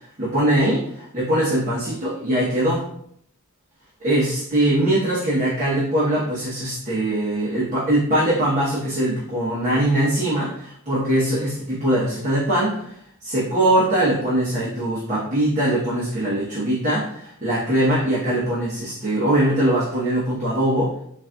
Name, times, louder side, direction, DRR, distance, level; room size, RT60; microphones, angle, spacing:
voice 1, 0.2-2.8 4.0-12.9 13.2-20.9, right 1 dB, 35° right, -8 dB, 0.8 m, -21 dB
4.1 x 2.5 x 2.2 m, 0.68 s
head